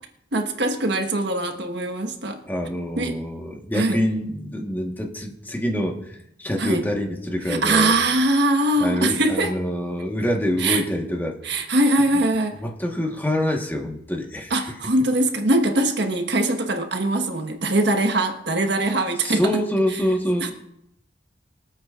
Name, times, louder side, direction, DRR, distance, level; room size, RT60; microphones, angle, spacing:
voice 1, 0.3-2.4 3.0-3.2 3.7-4.0 6.6-6.8 7.5-9.5 10.6-10.8 11.4-12.6 14.5-19.4 20.4-20.5, right 2 dB, 70° right, 5 dB, 1.4 m, -22 dB
voice 2, 2.5-7.9 8.8-11.4 12.6-14.5 19.2-20.5, equal, 10° left, 1 dB, 1.3 m, -26 dB
23.5 x 8.6 x 2.5 m, 0.78 s
head